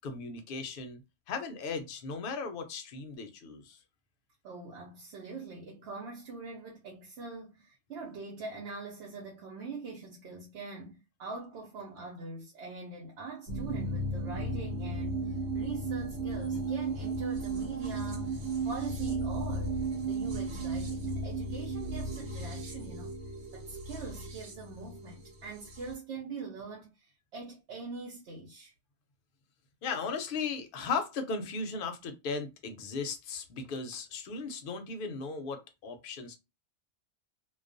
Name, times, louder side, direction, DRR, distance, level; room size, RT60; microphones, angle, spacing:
voice 1, 0.0-1.0 1.3-3.8 29.8-36.4, left 4 dB, 60° left, 0.6 m, -36 dB
voice 2, 4.4-19.8 20.1-23.1 23.5-28.7, right 4 dB, 70° right, 0.9 m, -43 dB
sound 1, 13.5-25.9, right 3 dB, 90° right, 1.2 m, -35 dB
2.3 x 2.2 x 2.5 m
omnidirectional pair, 1.2 m